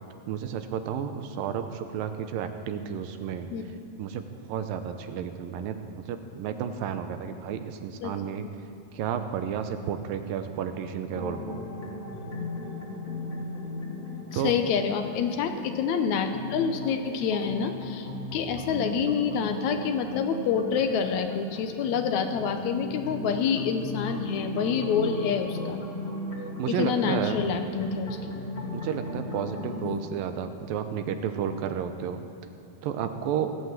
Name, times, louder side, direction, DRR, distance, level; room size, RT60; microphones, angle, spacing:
voice 1, 0.3-11.6 14.3-14.5 26.6-27.4 28.7-32.2 32.8-33.6, right 8 dB, 80° right, 8 dB, 2.4 m, -32 dB
sound 1, 11.1-29.8, left 2 dB, 35° left, 1.0 m, -37 dB
voice 2, 14.3-25.8 26.8-28.4 29.8-30.0, left 6 dB, 75° left, 6 dB, 1.7 m, -27 dB
17.5 x 8.5 x 7.5 m, 2.7 s
omnidirectional pair, 4.3 m